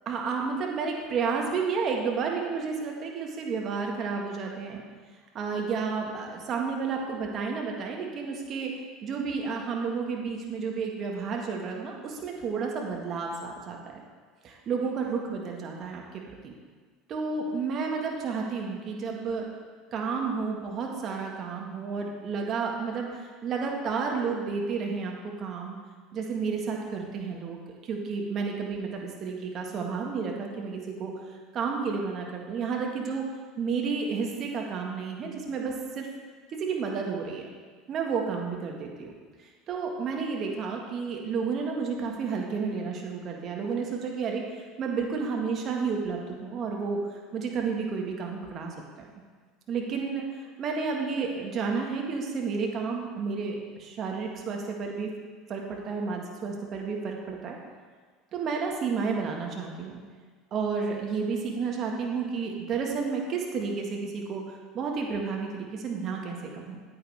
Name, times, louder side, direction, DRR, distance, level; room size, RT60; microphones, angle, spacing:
voice 1, 0.0-4.8 5.3-8.7 9.0-14.0 14.4-16.5 17.1-19.5 19.9-25.8 26.1-27.6 27.8-31.1 31.5-33.3 33.6-36.1 36.5-37.4 37.9-39.1 39.7-47.0 47.3-48.7 49.7-55.1 55.5-57.6 58.3-60.0 60.5-66.8, right 5 dB, 45° right, 0 dB, 1.7 m, -31 dB
9.5 x 8.6 x 3.5 m, 1.5 s
hypercardioid pair, 75°, 0 cm